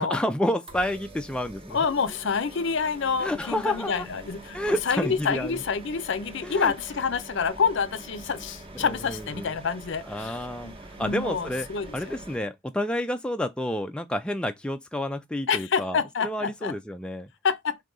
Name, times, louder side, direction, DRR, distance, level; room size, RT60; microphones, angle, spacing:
voice 1, 0.0-1.8 3.2-4.1 4.5-5.6 6.4-6.7 8.8-9.5 10.1-10.7 11.0-11.7 11.9-17.3, left 1 dB, 5° left, 0.3 m, -29 dB
sound 1, 0.7-12.4, right 2 dB, 25° right, 0.9 m, -45 dB
voice 2, 1.7-12.1 15.5-16.7 17.4-17.8, left 5 dB, 60° left, 0.5 m, -28 dB
3.8 x 2.7 x 4.8 m
head